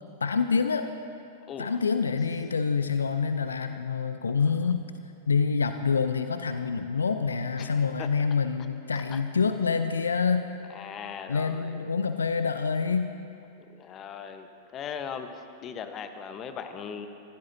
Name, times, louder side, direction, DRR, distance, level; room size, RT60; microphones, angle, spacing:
voice 1, 0.2-0.9 1.6-4.8 5.3-10.4 11.3-13.1, left 5 dB, 75° left, 9 dB, 0.6 m, -26 dB
voice 2, 7.6-8.1 9.1-9.2 10.7-11.8 13.7-17.1, left 7 dB, 30° left, 8 dB, 1.1 m, -39 dB
24.0 x 15.5 x 2.8 m, 2.6 s
figure-of-eight pair, 95°, 0 cm